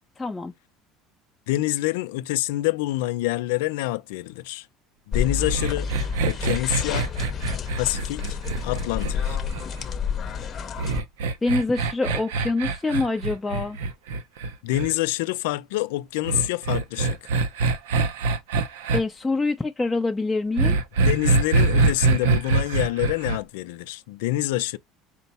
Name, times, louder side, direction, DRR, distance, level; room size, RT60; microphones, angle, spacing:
voice 1, 0.2-0.5 11.4-13.8 18.9-20.8, left 3 dB, 15° left, 0.4 m, -25 dB
voice 2, 1.5-4.7 5.1-5.9 6.2-7.1 7.7-8.4 8.6-9.4 14.6-17.2 21.0-24.8, left 17 dB, 80° left, 0.4 m, -26 dB
sound 1, 5.1-11.0, left 7 dB, 40° left, 0.7 m, -29 dB
sound 2, 5.4-9.8 10.8-14.9 16.3-19.0 20.6-23.4, right 3 dB, 90° right, 0.5 m, -24 dB
4.4 x 2.0 x 4.1 m
supercardioid pair, 95°, 0 cm